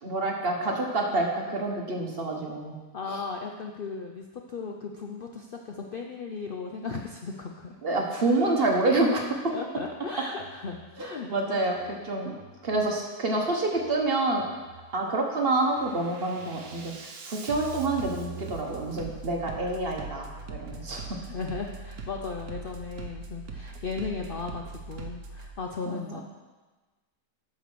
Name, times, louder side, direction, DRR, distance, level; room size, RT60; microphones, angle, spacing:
voice 1, 0.0-2.8 7.8-9.5 11.0-12.3 12.6-14.5 14.9-21.1 25.9-26.2, right 2 dB, 40° right, 1 dB, 1.3 m, -27 dB
voice 2, 2.9-7.8 9.5-11.3 20.7-20.8 21.2-26.2, left 4 dB, 80° left, 2 dB, 0.4 m, -36 dB
Bass drum, 9.8-9.9 10.4-10.9 11.7-11.9 12.4-12.9 13.7-13.9 14.4-14.9 15.3-25.5, right 4 dB, 65° right, 1.4 m, -42 dB
8.2 x 6.6 x 6.1 m, 1.3 s
omnidirectional pair, 1.8 m